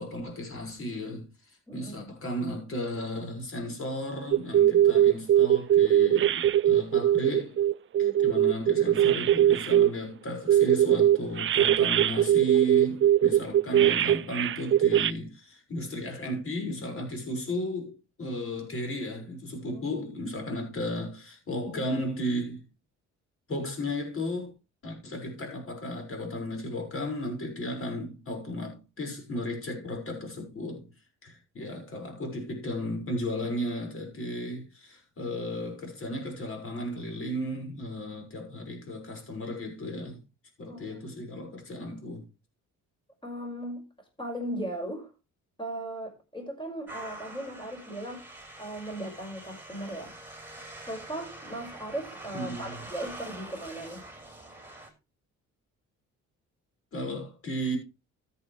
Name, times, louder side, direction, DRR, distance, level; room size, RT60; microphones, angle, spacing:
voice 1, 0.0-7.6 8.0-22.6 23.5-24.5 24.8-30.9 31.2-40.2 40.6-42.2 52.3-52.8 56.9-57.8, equal, 45° left, 5.9 m, -34 dB
voice 2, 1.7-2.1 8.0-8.3 19.7-19.8 40.6-41.0 43.2-43.8 44.2-45.1 45.6-48.2 48.6-50.1 50.8-54.0, right 1 dB, 15° left, 6.1 m, -38 dB
sound 1, 4.3-9.9 10.5-15.1, right 11 dB, 45° right, 0.5 m, -21 dB
sound 2, 46.9-54.9, right 1 dB, 5° right, 5.5 m, -45 dB
14.0 x 8.7 x 3.4 m
cardioid pair, 90°, 30 cm